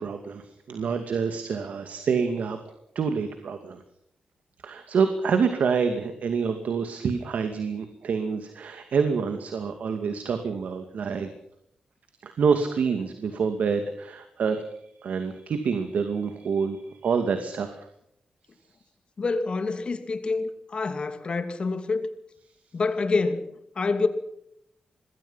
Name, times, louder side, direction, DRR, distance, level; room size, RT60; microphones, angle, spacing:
voice 1, 0.0-2.6 2.9-3.8 4.6-11.3 12.2-14.6 15.0-17.9, right 5 dB, 70° right, 2.4 m, -27 dB
voice 2, 19.2-22.1 22.7-24.1, left 3 dB, 40° left, 2.6 m, -27 dB
26.5 x 21.5 x 5.8 m
wide cardioid pair, 155°, 3 cm